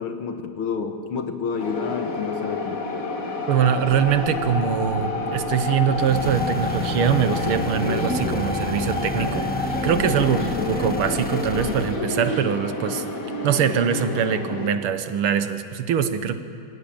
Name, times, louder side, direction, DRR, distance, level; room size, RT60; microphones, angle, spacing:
voice 1, 0.0-2.8, left 5 dB, 75° left, 6 dB, 2.2 m, -29 dB
sound 1, 1.6-14.7, left 3 dB, 40° left, 2.2 m, -29 dB
voice 2, 3.5-13.0 13.4-16.3, right 8 dB, 90° right, 10 dB, 2.0 m, -23 dB
sound 2, 3.8-9.8, right 3 dB, 35° right, 1.5 m, -40 dB
sound 3, 5.9-12.0, left 2 dB, 10° left, 0.5 m, -31 dB
24.0 x 17.0 x 8.8 m, 2.4 s
omnidirectional pair, 2.3 m